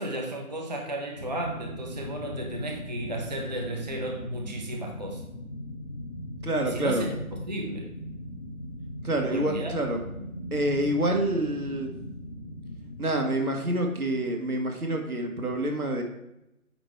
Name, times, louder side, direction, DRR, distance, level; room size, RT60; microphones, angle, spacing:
voice 1, 0.0-5.2 6.7-7.9 9.3-9.7, right 1 dB, 30° right, 2 dB, 0.6 m, -34 dB
sound 1, 1.2-13.0, left 1 dB, 30° left, 0.6 m, -39 dB
voice 2, 6.4-7.0 9.0-10.0 10.5-11.9 13.0-16.0, right 1 dB, 75° right, 3 dB, 1.7 m, -27 dB
8.7 x 3.6 x 4.5 m, 0.86 s
figure-of-eight pair, 150°, 44 cm